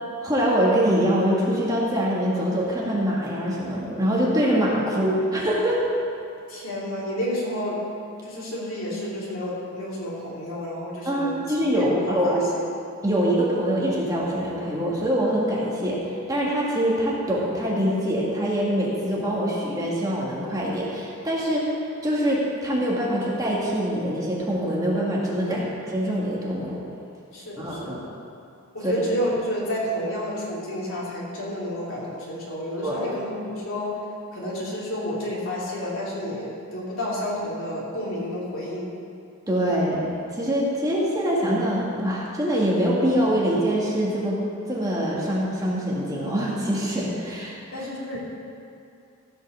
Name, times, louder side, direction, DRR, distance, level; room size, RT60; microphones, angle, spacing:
voice 1, 0.2-5.8 11.1-12.4 13.0-16.0 16.3-21.7 22.0-26.8 27.6-28.0 28.8-28.9 32.8-33.1 39.5-44.4 44.7-47.8, equal, 15° right, -5 dB, 1.9 m, -24 dB
voice 2, 6.5-7.8 8.2-11.4 11.7-12.7 25.5-25.6 27.3-27.9 28.7-34.0 34.3-39.0 47.7-48.2, left 1 dB, 65° left, -6 dB, 3.1 m, -30 dB
15.0 x 5.6 x 6.8 m, 2.6 s
head